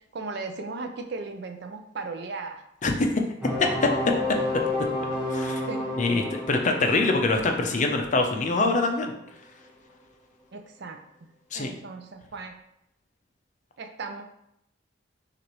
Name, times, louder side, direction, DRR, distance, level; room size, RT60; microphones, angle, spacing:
voice 1, 0.1-2.6 5.7-5.9 10.5-11.3 11.5-12.6 13.8-14.2, right 3 dB, 60° right, 5 dB, 0.5 m, -37 dB
sound 1, 3.4-9.0, left 2 dB, 5° right, 1.3 m, -31 dB
voice 2, 3.6-3.9 5.3-5.6 6.0-9.1 11.5-11.7, left 3 dB, 40° left, 4 dB, 0.5 m, -24 dB
6.1 x 2.5 x 3.0 m, 0.79 s
head